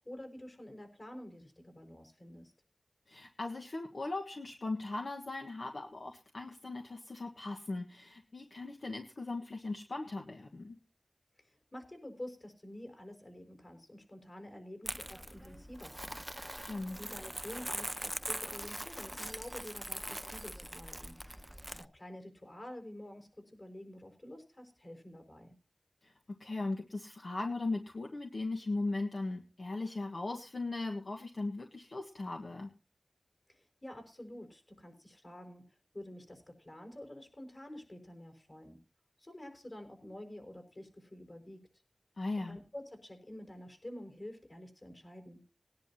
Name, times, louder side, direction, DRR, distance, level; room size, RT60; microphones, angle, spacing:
voice 1, 0.0-2.5 11.4-16.3 16.9-21.2 21.8-25.6 33.5-38.8 39.2-41.7 42.4-45.4, left 1 dB, 45° left, 5 dB, 5.4 m, -49 dB
voice 2, 3.1-10.8 16.6-17.0 26.0-32.7 42.2-42.6, left 2 dB, 70° left, 2 dB, 1.5 m, -38 dB
Crumpling crinkling, 14.8-21.8, right 1 dB, 15° right, 0.6 m, -42 dB
20.0 x 10.5 x 2.8 m, 0.34 s
wide cardioid pair, 45°, 0 cm